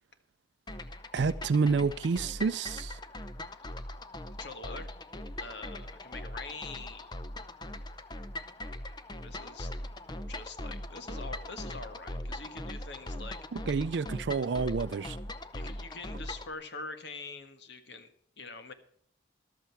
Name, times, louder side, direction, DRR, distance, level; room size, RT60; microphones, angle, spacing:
sound 1, 0.7-16.5, left 1 dB, 25° left, 0.7 m, -40 dB
voice 1, 1.1-3.0 13.5-15.2, right 4 dB, 75° right, 0.4 m, -29 dB
voice 2, 4.4-4.9 5.4-7.1 9.2-9.7 10.3-13.7 15.5-18.7, left 3 dB, 75° left, 1.6 m, -44 dB
14.0 x 12.5 x 4.7 m
head